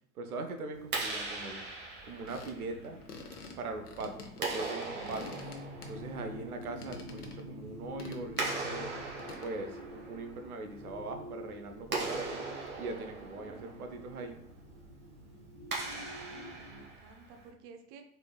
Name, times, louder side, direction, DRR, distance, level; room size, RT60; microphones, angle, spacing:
voice 1, 0.1-1.6 2.0-3.0 3.6-5.4 5.9-9.0 9.4-12.5 12.8-14.4, right 3 dB, 75° right, 6 dB, 0.7 m, -41 dB
Clapping, 0.7-17.5, right 3 dB, 25° right, 1.1 m, -41 dB
sound 1, 2.3-6.3 6.6-7.5 8.0-8.6 9.2-9.6, left 3 dB, 85° left, 0.8 m, -48 dB
sound 2, 5.1-16.8, left 1 dB, 45° left, 1.3 m, -48 dB
voice 2, 13.2-13.9 15.8-18.0, right 5 dB, 40° right, 6 dB, 0.5 m, -55 dB
4.1 x 3.3 x 2.3 m, 0.73 s
figure-of-eight pair, 90°, 44 cm